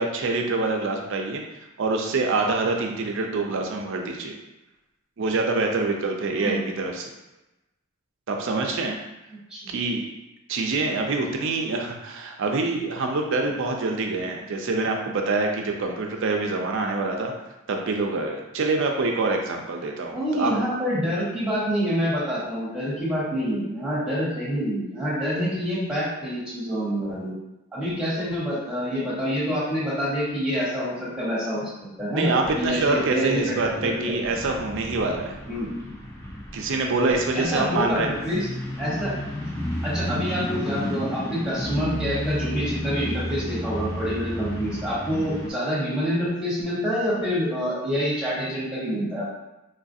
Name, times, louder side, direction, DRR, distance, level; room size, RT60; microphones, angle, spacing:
voice 1, 0.0-1.4 1.8-4.4 5.2-7.1 8.3-9.0 9.7-10.1 10.5-17.3 17.7-20.5 32.1-35.3 36.5-38.1, right 3 dB, 65° right, 2 dB, 0.5 m, -25 dB
voice 2, 20.1-27.3 27.7-31.7 32.0-32.3 32.6-34.1 35.5-35.7 37.3-38.5 38.8-39.1 39.8-49.3, equal, 5° right, -8 dB, 1.1 m, -27 dB
sound 1, 32.4-45.5, equal, 15° left, 0.6 m, -32 dB
3.7 x 2.4 x 2.6 m, 0.98 s
head